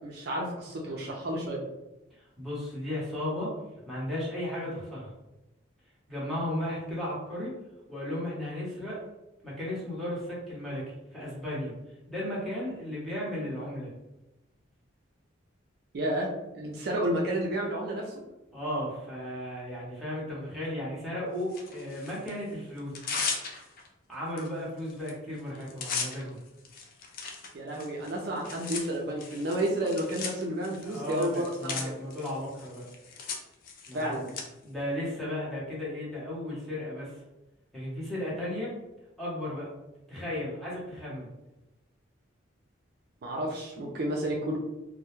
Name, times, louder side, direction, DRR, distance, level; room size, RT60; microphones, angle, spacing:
voice 1, 0.0-1.6 15.9-16.3 16.5-18.1 27.5-32.0 33.9-34.2 43.2-44.6, right 1 dB, 50° right, -2 dB, 0.4 m, -31 dB
voice 2, 2.4-3.6 3.9-5.1 6.1-7.6 7.9-9.0 9.4-11.7 12.1-13.9 18.5-22.9 24.1-26.4 30.8-32.9 33.9-34.2 34.6-37.2 37.7-38.8 39.2-39.7 40.1-41.3, left 1 dB, ahead, -8 dB, 0.7 m, -35 dB
Tearing, 21.5-22.3 22.8-23.9 24.4-24.5 24.8-25.1 25.4-34.4, left 5 dB, 45° left, 0.3 m, -38 dB
2.1 x 2.0 x 3.0 m, 0.97 s
head